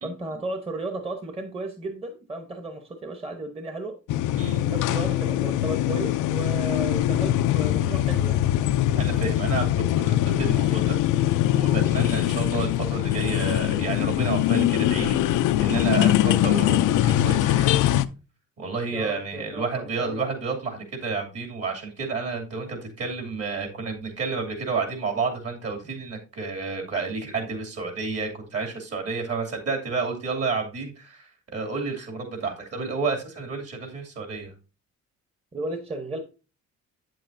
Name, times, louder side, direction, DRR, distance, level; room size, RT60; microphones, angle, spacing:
voice 1, 0.0-4.0 4.5-8.4 18.9-20.3 35.5-36.2, right 2 dB, 20° right, 6 dB, 1.0 m, -34 dB
sound 1, 4.1-18.1, left 13 dB, 85° left, 0.5 m, -22 dB
voice 2, 9.0-17.7 18.6-34.5, right 4 dB, 55° right, 2 dB, 2.6 m, -30 dB
8.2 x 7.6 x 2.6 m, 0.32 s
cardioid pair, 90°, 30 cm